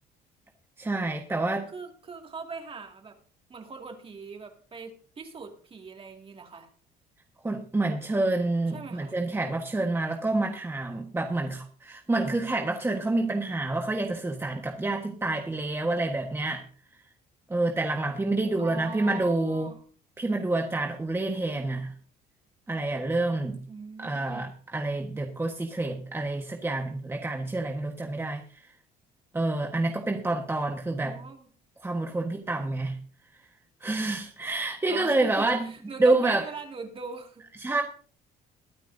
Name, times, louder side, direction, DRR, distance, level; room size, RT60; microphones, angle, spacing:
voice 1, 0.8-1.7 7.4-16.6 17.5-19.7 20.2-21.9 22.7-23.6 24.0-28.6 29.3-31.2 31.8-33.0 33.8-35.7 36.0-36.4 37.6-37.8, right 2 dB, 15° right, 3 dB, 1.4 m, -28 dB
voice 2, 1.7-3.2 3.5-6.7 8.7-9.2 18.6-19.8 23.7-24.5 31.0-31.5 34.9-37.4, right 4 dB, 35° right, 4 dB, 2.3 m, -41 dB
22.5 x 9.1 x 2.7 m, 0.43 s
cardioid pair, 110°, 17 cm